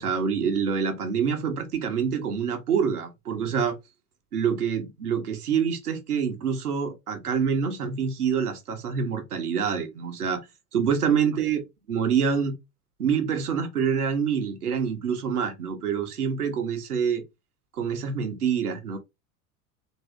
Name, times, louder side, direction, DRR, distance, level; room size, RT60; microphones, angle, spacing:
voice 1, 0.0-3.7 4.3-10.4 10.7-11.6 11.9-12.5 13.0-17.2 17.8-19.0, right 7 dB, 85° right, 1.6 m, -26 dB
4.1 x 3.4 x 3.7 m
hypercardioid pair, 90°, 44 cm